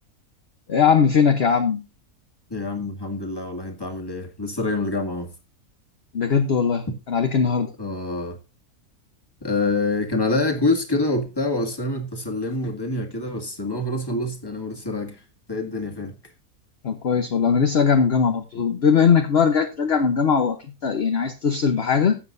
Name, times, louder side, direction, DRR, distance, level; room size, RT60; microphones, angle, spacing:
voice 1, 0.7-1.8 6.1-7.7 16.8-22.2, left 6 dB, 45° left, 1.1 m, -20 dB
voice 2, 2.5-5.3 7.8-8.4 9.4-15.2 15.5-16.2, left 2 dB, 15° left, 1.9 m, -26 dB
16.0 x 7.8 x 2.6 m
omnidirectional pair, 1.6 m